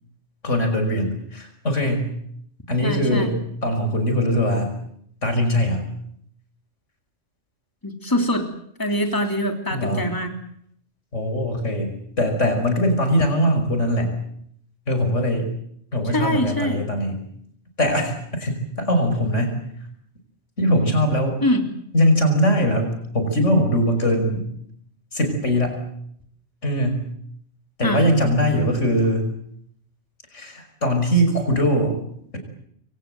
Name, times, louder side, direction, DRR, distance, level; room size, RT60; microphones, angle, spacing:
voice 1, 0.4-2.1 2.7-4.7 5.2-5.8 9.7-10.1 11.1-14.1 14.9-15.5 15.9-17.2 17.8-19.6 20.6-21.4 21.9-24.5 25.1-25.8 26.6-27.1 27.8-29.3 30.3-32.0, equal, 85° left, 6 dB, 6.0 m, -21 dB
voice 2, 2.8-3.3 7.8-8.4 8.8-10.3 16.1-16.8 21.4-21.6 27.8-28.0, left 1 dB, 15° left, 4 dB, 3.4 m, -23 dB
28.0 x 23.0 x 7.9 m, 0.71 s
omnidirectional pair, 1.2 m